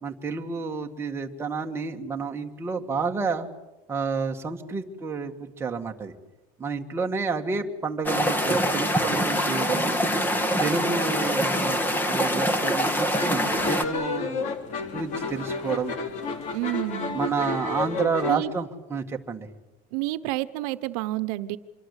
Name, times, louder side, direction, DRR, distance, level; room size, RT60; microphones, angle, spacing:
voice 1, 0.0-3.5 3.9-6.1 6.6-10.0 10.6-15.9 17.1-19.5, right 5 dB, 15° right, 2 dB, 1.7 m, -30 dB
sound 1, 8.0-13.8, equal, 10° left, 1.8 m, -24 dB
sound 2, 13.1-18.4, left 4 dB, 40° left, 2.9 m, -31 dB
voice 2, 16.5-17.2 18.3-18.5 19.9-21.6, right 17 dB, 75° right, 13 dB, 1.1 m, -29 dB
26.5 x 24.0 x 8.3 m, 1.0 s
cardioid pair, 170°, 19 cm